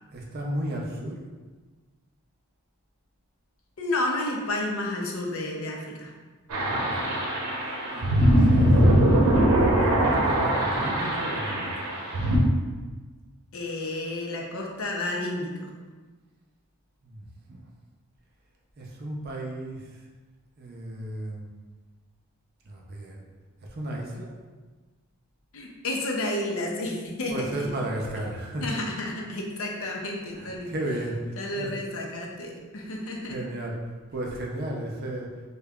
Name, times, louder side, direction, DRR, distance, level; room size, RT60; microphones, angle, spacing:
voice 1, 0.1-1.2 6.6-7.1 7.9-8.7 9.5-11.9 17.0-17.6 18.8-19.9 20.6-21.5 22.7-23.2 23.7-24.3 27.3-28.7 29.7-30.0 30.3-31.7 33.0-33.8 34.1-35.4, right 1 dB, 45° right, -1 dB, 0.5 m, -34 dB
voice 2, 3.8-6.1 13.5-15.7 25.5-27.7 28.6-30.7 31.4-33.4, left 1 dB, 65° left, 0 dB, 0.6 m, -31 dB
sound 1, 6.5-12.4, right 1 dB, 80° right, 0.7 m, -22 dB
5.1 x 2.2 x 2.3 m, 1.3 s
head